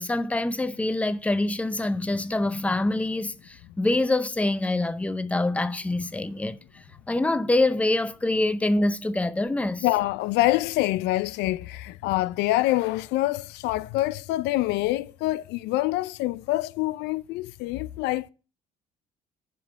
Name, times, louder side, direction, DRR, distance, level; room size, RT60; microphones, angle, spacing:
voice 1, 0.0-9.8, left 2 dB, 10° left, 0.6 m, -25 dB
voice 2, 9.8-18.3, left 17 dB, 90° left, 0.4 m, -26 dB
7.7 x 5.1 x 7.4 m
cardioid pair, 110°, 17 cm